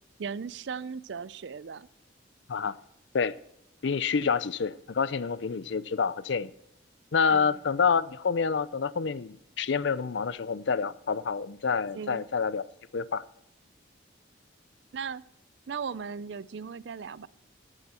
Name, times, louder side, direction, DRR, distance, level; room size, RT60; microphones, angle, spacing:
voice 1, 0.2-1.9 7.3-7.6 11.9-12.3 14.9-15.2 15.7-17.3, right 6 dB, 60° right, 0.4 m, -37 dB
voice 2, 3.8-6.5 7.1-12.6 12.9-13.2, left 5 dB, 60° left, 0.5 m, -28 dB
14.5 x 9.7 x 4.2 m
head